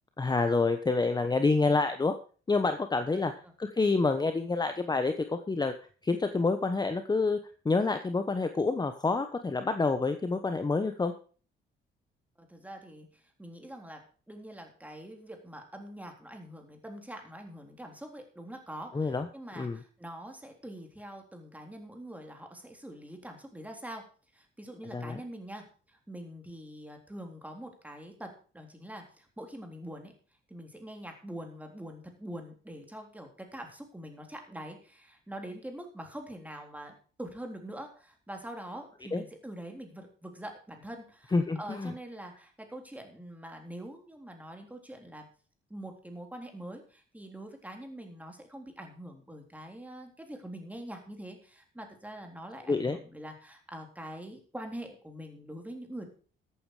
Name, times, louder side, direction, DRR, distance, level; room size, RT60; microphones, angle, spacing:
voice 1, 0.2-2.1 2.5-3.3 3.6-5.7 6.0-7.4 7.6-11.1 18.9-19.3 19.6-19.8 24.9-25.2 39.1-39.2 41.3-41.9 52.7-53.0, left 3 dB, 20° left, 8 dB, 1.0 m, -27 dB
voice 2, 12.4-24.0 24.3-30.1 30.5-45.3 45.7-56.0, right 1 dB, 5° right, 3 dB, 3.7 m, -44 dB
14.0 x 9.0 x 4.9 m, 0.40 s
cardioid pair, 90°, 20 cm